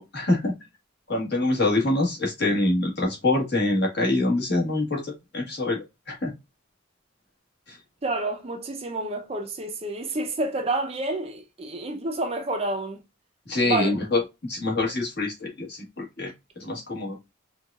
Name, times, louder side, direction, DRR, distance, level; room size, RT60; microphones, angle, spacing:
voice 1, 0.1-0.5 1.1-5.8 6.1-6.3 7.7-7.8 13.5-16.3 16.6-17.2, left 2 dB, 50° left, 1.5 m, -25 dB
voice 2, 8.0-13.0 13.6-13.9, right 2 dB, 30° right, 0.5 m, -29 dB
4.6 x 2.4 x 2.3 m
head